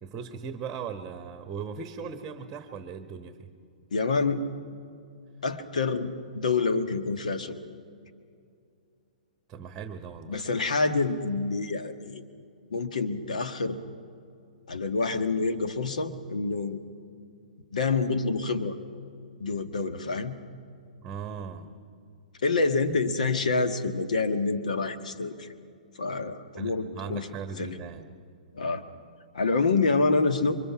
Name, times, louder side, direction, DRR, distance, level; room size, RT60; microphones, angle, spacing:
voice 1, 0.0-3.5 9.5-10.4 21.0-21.7 26.6-28.1, right 6 dB, 20° right, 8 dB, 1.3 m, -38 dB
voice 2, 3.9-4.4 5.4-7.6 10.3-12.2 12.7-13.8 14.7-16.8 17.7-18.8 19.4-20.4 22.4-25.5 26.0-27.3 27.6-27.8 28.6-28.8 29.3-30.6, left 3 dB, 65° left, 8 dB, 1.5 m, -27 dB
28.0 x 24.0 x 5.9 m, 2.4 s
figure-of-eight pair, 115°, 4 cm